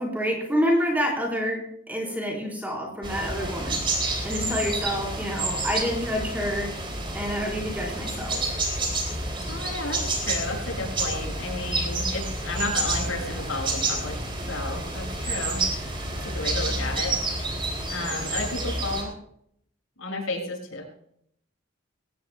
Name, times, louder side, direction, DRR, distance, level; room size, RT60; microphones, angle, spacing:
voice 1, 0.0-3.8 4.2-6.7 7.1-8.4, equal, 10° right, -2 dB, 4.1 m, -28 dB
sound 1, 3.0-19.0, right 2 dB, 25° right, 3.7 m, -29 dB
voice 2, 9.5-14.1 14.5-15.6 16.2-17.1 17.9-19.2 20.0-20.9, left 2 dB, 80° left, -1 dB, 6.9 m, -32 dB
22.0 x 18.5 x 2.2 m, 0.70 s
head